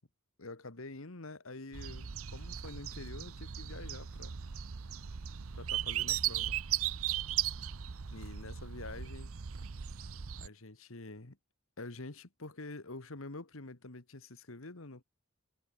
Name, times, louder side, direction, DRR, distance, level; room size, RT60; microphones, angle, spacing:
voice 1, 0.4-4.4 5.6-6.6 8.1-9.3 10.3-11.4 11.8-15.0, left 2 dB, 70° left, 1.8 m, -47 dB
sound 1, 1.7-10.5, right 10 dB, 75° right, 0.7 m, -37 dB
head